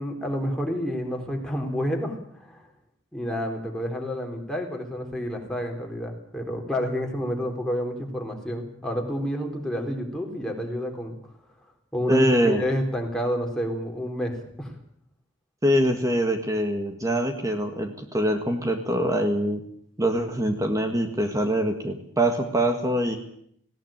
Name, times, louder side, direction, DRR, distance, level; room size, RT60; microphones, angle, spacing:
voice 1, 0.0-2.6 3.1-11.2 11.9-14.7, equal, 5° left, 1 dB, 4.1 m, -29 dB
voice 2, 12.1-12.6 15.6-19.6 20.0-23.2, equal, 15° right, 5 dB, 1.7 m, -24 dB
19.0 x 17.0 x 8.9 m, 0.67 s
head